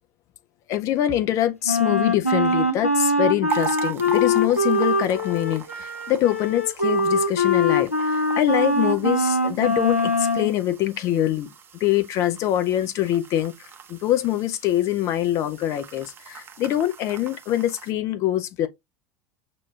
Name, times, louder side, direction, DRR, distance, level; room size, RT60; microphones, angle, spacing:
voice 1, 0.7-11.5 11.8-13.5 13.9-18.7, left 12 dB, 45° left, 0.5 m, -24 dB
Wind instrument woodwind instrument, 1.6-10.5, left 1 dB, 90° left, 0.5 m, -22 dB
sound 1, 3.5-17.9, right 8 dB, 30° right, 0.6 m, -41 dB
5.9 x 2.3 x 2.3 m
figure-of-eight pair, 70°, 7 cm